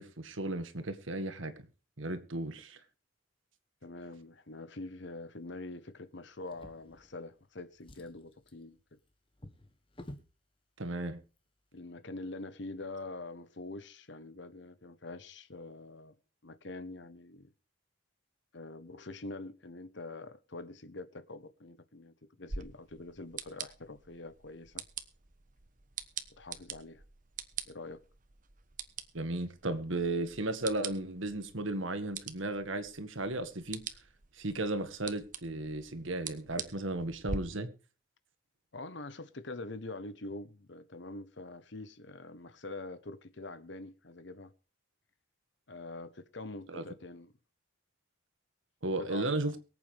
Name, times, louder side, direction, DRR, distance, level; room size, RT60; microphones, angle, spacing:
voice 1, 0.0-1.5 2.0-2.8 10.8-11.2 29.1-33.8 34.4-37.7 46.7-46.8 48.8-49.5, right 2 dB, 75° right, 1.9 m, -35 dB
voice 2, 3.8-8.8 11.7-16.2 16.4-17.5 18.5-24.8 26.4-27.0 27.7-28.0 38.7-44.5 45.7-47.3 49.0-49.6, left 2 dB, 60° left, 1.1 m, -45 dB
Drawer open or close, 6.4-7.4 7.7-10.3 11.2-11.4 11.8-11.9, left 1 dB, 25° left, 1.5 m, -52 dB
sound 1, 22.5-37.4, right 6 dB, 40° right, 1.1 m, -45 dB
23.0 x 8.6 x 3.5 m
head